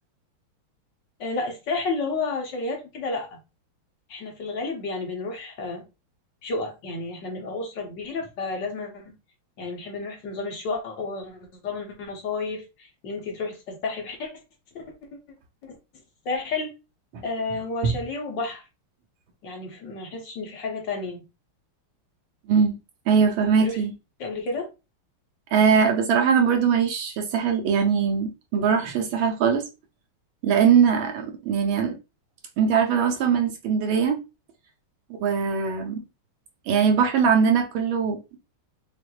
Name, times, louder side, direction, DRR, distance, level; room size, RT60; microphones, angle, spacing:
voice 1, 1.2-3.4 4.1-5.8 6.4-9.1 9.6-14.3 14.7-14.8 15.6-15.8 16.2-16.7 17.2-18.6 19.4-21.2 23.4-23.8 24.2-24.7, left 3 dB, 60° left, 1.5 m, -31 dB
voice 2, 23.1-23.9 25.5-29.6 30.4-31.9 32.6-34.2 35.2-36.0 36.7-38.2, right 6 dB, 75° right, 1.5 m, -21 dB
5.9 x 2.5 x 2.3 m
omnidirectional pair, 2.4 m